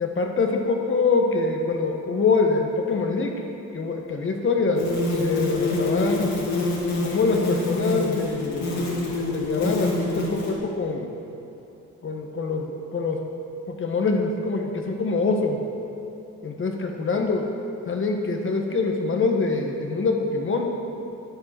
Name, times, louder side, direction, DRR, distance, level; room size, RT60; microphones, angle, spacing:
voice 1, 0.0-3.4 3.7-6.4 7.0-11.1 12.0-13.2 13.7-15.6 16.4-17.5 17.9-20.7, left 3 dB, 40° left, 3 dB, 1.5 m, -24 dB
sound 1, 4.7-10.6, left 2 dB, 65° left, 3.1 m, -26 dB
9.7 x 9.4 x 6.1 m, 2.9 s
cardioid pair, 90°, 30 cm